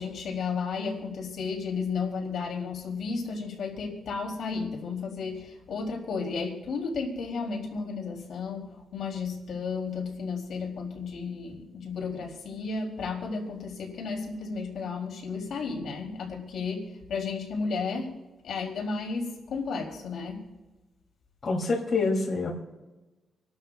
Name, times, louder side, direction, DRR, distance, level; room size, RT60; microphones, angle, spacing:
voice 1, 0.0-20.4, left 4 dB, 75° left, 0 dB, 3.2 m, -33 dB
voice 2, 21.4-22.5, left 3 dB, 45° left, -2 dB, 3.0 m, -26 dB
28.0 x 12.0 x 2.4 m, 1.1 s
cardioid pair, 110°, 0 cm